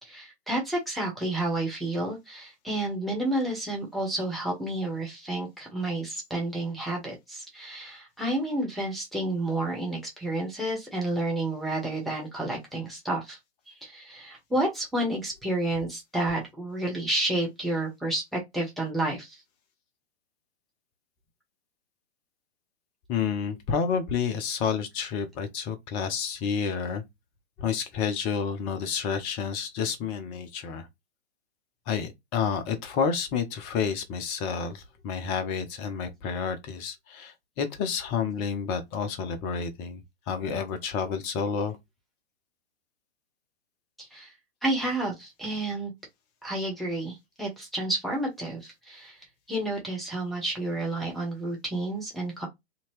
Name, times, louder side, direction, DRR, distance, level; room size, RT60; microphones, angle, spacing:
voice 1, 0.0-13.4 13.8-19.4 44.0-44.3 44.6-45.9 46.4-49.2 49.5-52.5, right 1 dB, ahead, 1.0 m, -30 dB
voice 2, 23.1-27.0 27.6-30.9 31.9-41.8, left 6 dB, 20° left, 0.5 m, -30 dB
2.8 x 2.8 x 3.0 m
figure-of-eight pair, 110°, 33 cm